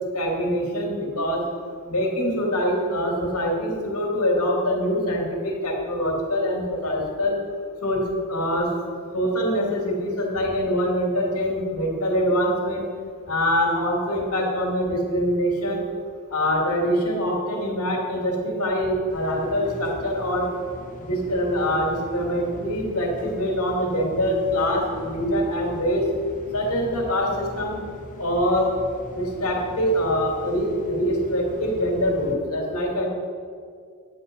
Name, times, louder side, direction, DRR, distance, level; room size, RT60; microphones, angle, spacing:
voice 1, 0.1-1.4 1.9-7.4 7.8-8.7 9.1-12.9 13.3-15.9 16.3-20.5 21.1-26.1 26.5-27.8 28.2-28.7 29.1-33.1, equal, 80° left, 0 dB, 2.7 m, -24 dB
sound 1, 19.1-32.3, equal, 35° left, 1.3 m, -41 dB
10.5 x 8.5 x 5.4 m, 2.2 s
head